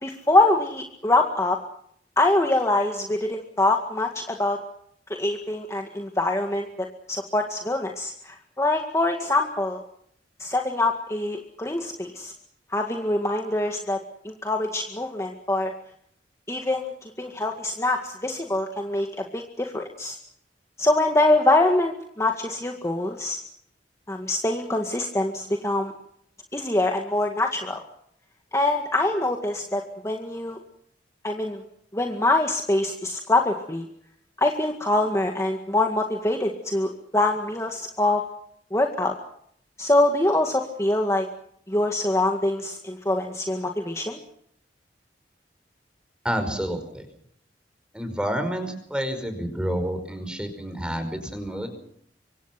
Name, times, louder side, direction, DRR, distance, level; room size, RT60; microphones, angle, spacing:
voice 1, 0.0-1.6 2.2-4.6 5.2-9.8 10.4-12.3 12.7-14.0 14.2-15.7 16.5-20.2 20.8-23.4 24.1-25.9 26.5-27.8 28.5-30.6 31.2-31.6 31.9-33.9 34.4-38.2 38.7-39.2 39.8-41.3 41.7-44.2, left 2 dB, 15° left, 3 dB, 2.0 m, -24 dB
voice 2, 46.2-47.1 47.9-51.7, equal, 5° right, 8 dB, 5.2 m, -29 dB
26.5 x 24.5 x 6.0 m, 0.68 s
head